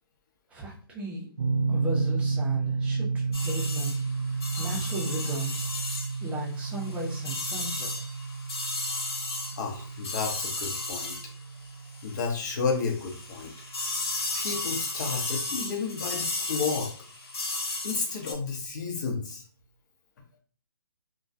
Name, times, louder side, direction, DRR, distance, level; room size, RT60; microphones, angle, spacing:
voice 1, 0.5-1.3 1.7-3.9 4.3-5.7 6.2-7.9, right 1 dB, 10° right, -3 dB, 0.6 m, -36 dB
sound 1, 1.4-14.3, right 4 dB, 80° right, 0.4 m, -32 dB
sound 2, 3.3-12.4 12.7-18.3, left 2 dB, 85° left, 0.9 m, -34 dB
voice 2, 9.6-11.2 12.0-13.5 14.3-16.9 17.8-19.4, left 5 dB, 50° left, 1 dB, 0.8 m, -31 dB
2.3 x 2.2 x 2.7 m, 0.41 s
hypercardioid pair, 145°, 13 cm